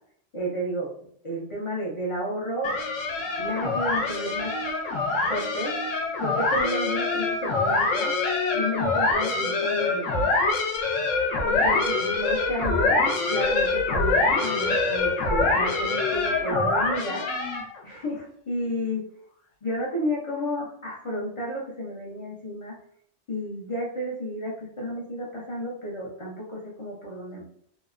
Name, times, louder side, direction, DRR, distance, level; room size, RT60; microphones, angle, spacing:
voice 1, 0.3-0.9 1.2-2.8 3.4-4.5 5.3-5.7 6.2-8.1 8.5-10.3 11.4-13.0 13.3-17.2 17.8-19.0 19.6-22.7 23.3-27.5, equal, 55° left, -4 dB, 0.3 m, -32 dB
sound 1, 2.6-17.8, left 3 dB, 90° left, 1.0 m, -25 dB
2.8 x 2.0 x 2.3 m, 0.66 s
omnidirectional pair, 1.3 m